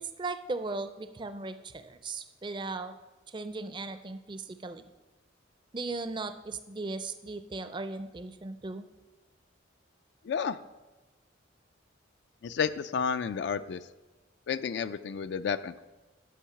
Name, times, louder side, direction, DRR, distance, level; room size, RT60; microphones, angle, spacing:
voice 1, 0.2-2.9 3.3-4.9 5.7-8.9, right 3 dB, 25° right, 10 dB, 0.4 m, -37 dB
voice 2, 10.3-10.6 12.4-13.8 14.5-15.8, left 6 dB, 60° left, 12 dB, 0.3 m, -31 dB
10.0 x 5.4 x 5.8 m, 1.1 s
head